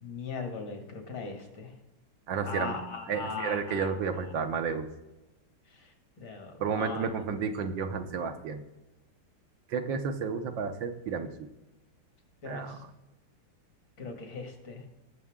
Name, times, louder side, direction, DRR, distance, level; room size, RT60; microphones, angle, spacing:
voice 1, 0.0-1.7 2.4-3.9 6.2-7.0 12.4-12.8 14.0-14.8, left 5 dB, 70° left, 3 dB, 2.8 m, -39 dB
voice 2, 2.3-2.8 3.1-4.9 6.6-8.6 9.7-11.3 12.4-12.8, right 5 dB, 70° right, 7 dB, 1.5 m, -31 dB
20.0 x 6.9 x 3.6 m, 1.0 s
omnidirectional pair, 2.2 m